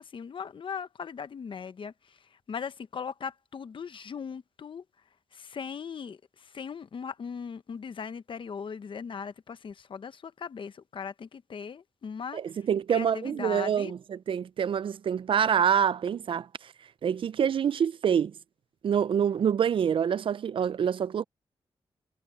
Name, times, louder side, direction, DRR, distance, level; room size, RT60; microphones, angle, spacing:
voice 1, 0.0-4.8 5.3-12.6 12.9-13.9, left 6 dB, 55° left, 1.0 m, -39 dB
voice 2, 12.3-16.7 17.0-18.3 18.8-21.2, right 8 dB, 60° right, 0.4 m, -26 dB
cardioid pair, 85°, 10 cm